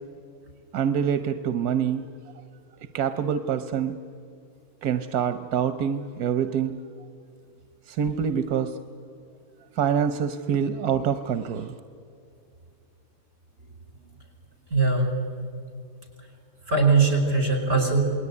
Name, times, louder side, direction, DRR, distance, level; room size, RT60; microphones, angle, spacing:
voice 1, 0.7-2.0 2.9-4.0 4.8-6.8 7.9-8.8 9.8-11.8, right 8 dB, 90° right, 10 dB, 1.3 m, -25 dB
voice 2, 14.7-15.2 16.7-18.1, right 4 dB, 55° right, 4 dB, 5.4 m, -21 dB
28.0 x 20.0 x 9.7 m, 2.4 s
omnidirectional pair, 1.5 m